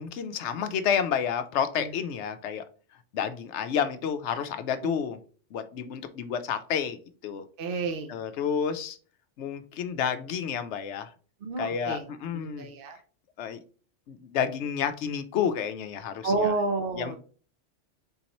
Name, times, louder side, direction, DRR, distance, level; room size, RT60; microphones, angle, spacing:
voice 1, 0.0-2.6 3.1-5.2 5.5-7.4 8.1-9.0 9.4-11.1 11.6-12.7 13.4-13.6 14.1-16.5 17.0-17.2, left 7 dB, 75° left, 10 dB, 0.8 m, -30 dB
voice 2, 7.6-8.1 11.4-12.1 12.3-13.0 16.2-17.2, right 3 dB, 55° right, 4 dB, 0.7 m, -30 dB
4.1 x 3.8 x 2.9 m, 0.40 s
omnidirectional pair, 1.2 m